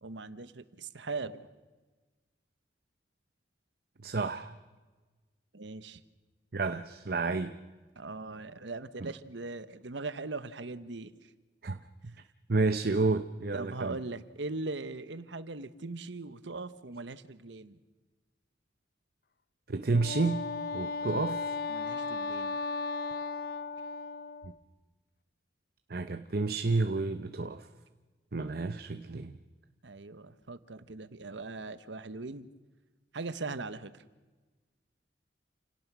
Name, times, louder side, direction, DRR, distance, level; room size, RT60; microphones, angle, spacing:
voice 1, 0.0-1.5 5.5-6.0 8.0-11.3 12.1-12.2 13.5-17.8 21.1-21.3 21.7-22.6 28.3-28.6 29.8-32.5 33.1-34.0, right 3 dB, 80° right, 14 dB, 1.1 m, -40 dB
voice 2, 4.0-4.5 6.5-7.6 9.0-9.1 11.6-11.8 12.5-14.0 19.7-20.5 20.7-21.5 25.9-27.6 28.3-29.4, right 3 dB, 55° right, 9 dB, 0.8 m, -30 dB
Wind instrument woodwind instrument, 19.9-24.5, left 4 dB, 55° left, 0.7 m, -35 dB
29.0 x 17.5 x 6.2 m, 1.3 s
head